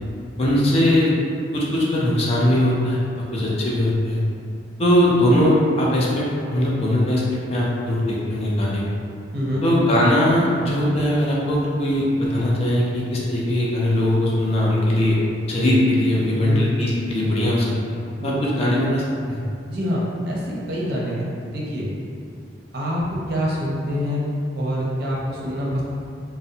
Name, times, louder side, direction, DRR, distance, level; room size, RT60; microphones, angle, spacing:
voice 1, 0.4-1.1 1.5-3.0 3.3-4.2 4.8-8.8 9.6-15.2 15.5-17.7 18.2-19.4, left 1 dB, 35° left, -5 dB, 0.4 m, -20 dB
voice 2, 19.7-21.9 22.7-25.8, equal, 60° right, -5 dB, 0.5 m, -26 dB
2.6 x 2.0 x 2.7 m, 2.3 s
head